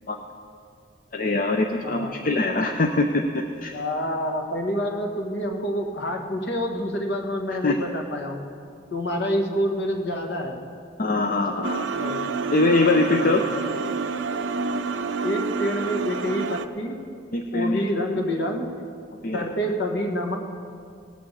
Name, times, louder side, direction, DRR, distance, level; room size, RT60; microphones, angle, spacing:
voice 1, 1.1-3.7 7.6-7.8 11.0-11.8 12.5-13.4 17.3-17.8 19.2-19.4, left 2 dB, 45° left, 3 dB, 0.6 m, -23 dB
voice 2, 1.8-2.2 3.7-8.4 8.9-10.6 11.9-12.2 13.1-13.6 15.2-17.0 17.5-18.7 19.3-20.4, equal, 65° left, 3 dB, 1.5 m, -27 dB
sound 1, 11.6-16.7, right 4 dB, 85° right, 0.6 m, -28 dB
18.5 x 6.2 x 7.3 m, 2.3 s
head